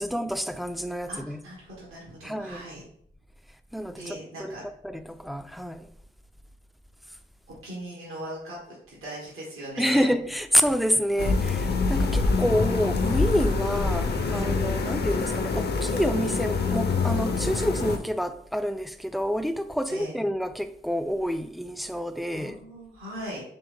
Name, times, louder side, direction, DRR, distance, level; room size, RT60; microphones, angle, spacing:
voice 1, 0.0-1.4 2.2-2.6 3.7-4.6 4.8-5.9 9.8-22.6, equal, ahead, 0.3 m, -28 dB
voice 2, 1.1-2.8 3.9-4.6 7.5-10.1 14.3-14.5 19.9-20.2 22.3-23.4, right 1 dB, 85° right, 1.2 m, -39 dB
sound 1, 11.2-18.0, left 4 dB, 50° left, 0.6 m, -25 dB
3.4 x 3.1 x 3.4 m
supercardioid pair, 45°, 21 cm